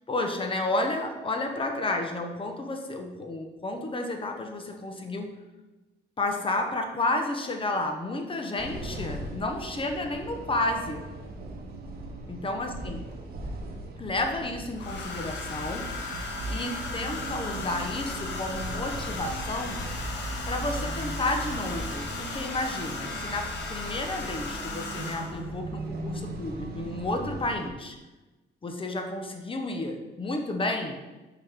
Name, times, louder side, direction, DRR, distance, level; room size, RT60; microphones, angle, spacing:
voice 1, 0.1-5.4 6.2-11.1 12.3-13.0 14.0-16.0 16.5-19.8 20.5-28.0 28.6-31.0, left 2 dB, 25° left, 4 dB, 0.9 m, -31 dB
sound 1, 8.6-27.7, right 2 dB, 50° right, 1.0 m, -38 dB
Domestic sounds home sounds, 12.7-13.3 14.7-25.5 26.7-27.0 27.3-27.6, left 3 dB, 65° left, 1.1 m, -37 dB
5.5 x 4.8 x 3.6 m, 1.1 s
cardioid pair, 90°, 20 cm